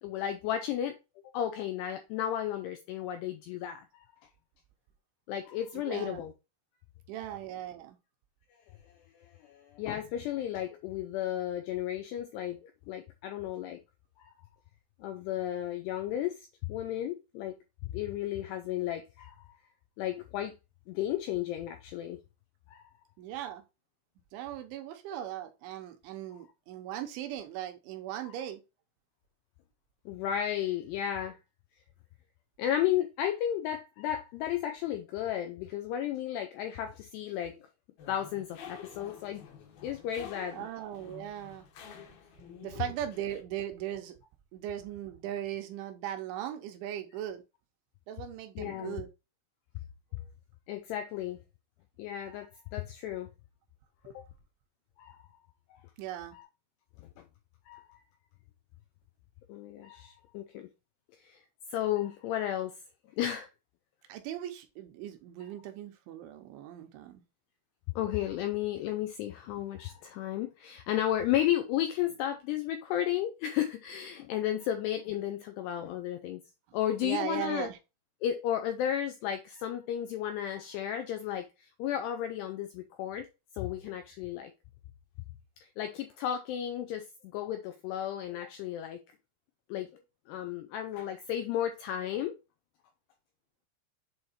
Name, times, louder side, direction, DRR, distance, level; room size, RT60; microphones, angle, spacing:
voice 1, 0.0-1.0 1.3-4.1 5.3-6.3 9.2-13.8 14.2-14.3 15.0-17.5 17.8-19.5 20.0-20.5 20.9-22.2 22.7-22.8 30.1-31.4 32.6-37.7 38.1-39.4 39.8-40.7 48.6-49.0 50.7-51.4 52.0-53.3 54.1-54.2 55.0-55.2 56.3-56.4 57.0-57.2 57.7-58.0 59.5-60.7 61.2-61.4 61.7-62.7 63.2-63.5 68.0-76.4 76.7-77.7 78.2-83.3 83.5-84.5 85.6-89.0 89.7-92.3, left 11 dB, 90° left, 2.4 m, -33 dB
voice 2, 5.7-6.2 7.1-8.0 23.2-23.6 24.3-28.6 40.5-41.7 42.6-44.1 44.5-47.4 48.1-49.1 50.1-50.2 56.0-56.4 64.1-67.2 76.7-77.8, right 11 dB, 80° right, 3.1 m, -38 dB
sound 1, 38.0-43.4, left 7 dB, 65° left, 2.7 m, -49 dB
7.9 x 3.2 x 4.2 m
omnidirectional pair, 5.5 m